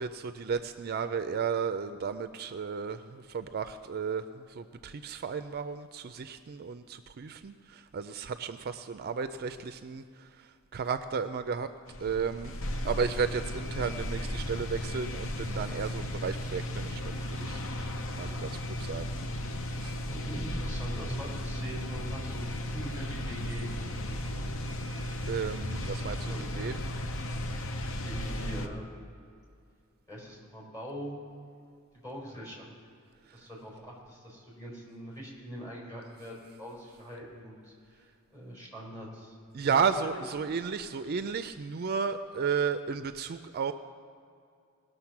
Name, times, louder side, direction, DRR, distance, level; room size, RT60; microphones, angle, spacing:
voice 1, 0.0-4.2 4.5-10.3 10.7-11.7 12.0-12.5 12.8-19.1 19.8-20.0 25.3-26.7 39.5-43.7, right 6 dB, 45° right, 10 dB, 0.4 m, -33 dB
sound 1, 11.9-28.7, left 1 dB, 65° left, 0.8 m, -35 dB
voice 2, 20.1-23.8 24.0-24.4 26.2-26.6 27.9-28.9 30.1-31.2 32.0-32.7 33.3-39.3 39.6-40.5, equal, 15° left, -5 dB, 4.0 m, -43 dB
19.5 x 6.7 x 5.9 m, 2.4 s
head